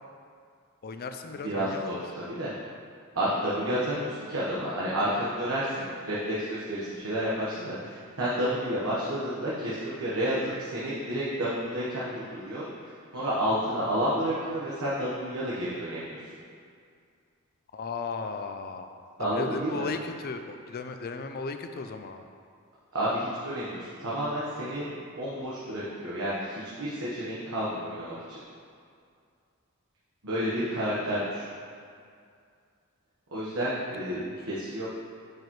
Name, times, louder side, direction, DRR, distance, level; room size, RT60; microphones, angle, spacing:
voice 1, 0.8-2.0 17.7-18.9 19.2-22.2 34.1-34.4, left 4 dB, 45° left, 7 dB, 0.4 m, -36 dB
voice 2, 1.4-2.5 3.1-12.7 13.1-16.2 19.2-19.9 22.9-24.8 25.2-28.4 30.2-31.4 33.3-34.2 34.5-34.9, equal, 65° right, -8 dB, 1.2 m, -30 dB
9.3 x 4.8 x 3.1 m, 2.3 s
head